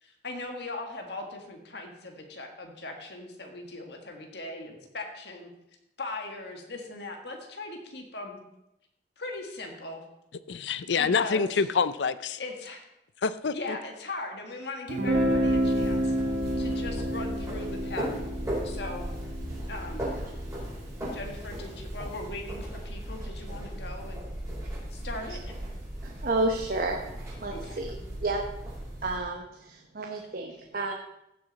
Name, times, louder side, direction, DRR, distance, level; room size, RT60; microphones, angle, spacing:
voice 1, 0.0-5.5 6.0-8.4 9.2-10.0 11.0-11.7 12.4-12.8 13.5-16.2 16.6-18.2 18.6-19.0 19.7-20.1 21.1-24.2 24.9-25.4 27.5-27.8, left 2 dB, 70° left, 3 dB, 1.7 m, -39 dB
voice 2, 10.5-12.4 13.2-13.5, left 5 dB, 85° left, 15 dB, 0.5 m, -26 dB
Guitar, 14.9-20.7, equal, 75° right, 1.4 m, -29 dB
sound 1, 15.1-29.2, right 1 dB, 20° right, 4.8 m, -37 dB
voice 3, 26.0-27.0 27.4-28.0 28.2-28.4 29.0-30.9, right 2 dB, 55° right, 2 dB, 0.9 m, -30 dB
15.5 x 6.8 x 4.1 m, 0.86 s
head